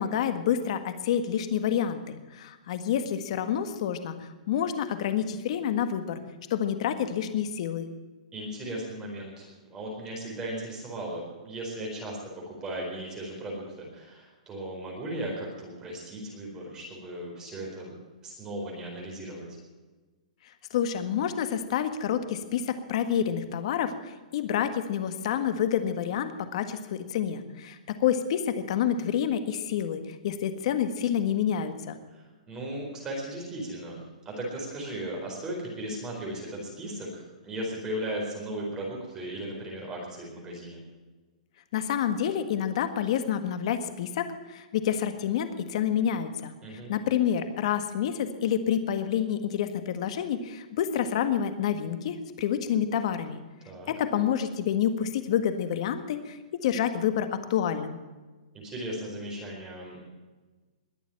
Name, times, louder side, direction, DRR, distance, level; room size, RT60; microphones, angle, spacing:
voice 1, 0.0-6.2 6.5-7.9 20.7-32.0 41.7-46.5 46.9-53.4 53.9-58.0, left 9 dB, 50° left, 9 dB, 1.7 m, -28 dB
voice 2, 8.3-17.9 18.2-19.5 32.1-34.0 34.2-40.8 46.6-46.9 53.6-53.9 58.5-60.1, right 1 dB, 15° right, -2 dB, 4.3 m, -37 dB
21.0 x 7.2 x 8.9 m, 1.3 s
hypercardioid pair, 160°, 4 cm